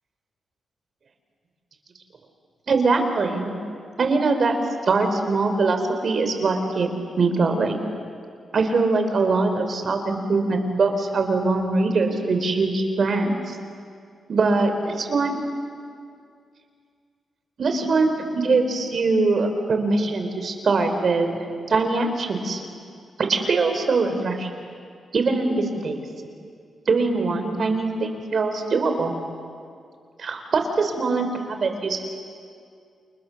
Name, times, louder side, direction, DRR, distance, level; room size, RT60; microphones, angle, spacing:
voice 1, 2.7-3.5 4.0-4.5 4.8-6.9 7.2-7.8 8.5-13.6 14.3-15.4 17.6-21.4 21.7-22.6 23.2-24.5 25.1-26.0 26.9-29.1 30.2-32.0, right 3 dB, 50° right, 6 dB, 3.6 m, -22 dB
29.0 x 29.0 x 7.0 m, 2.3 s
wide cardioid pair, 145°, 0 cm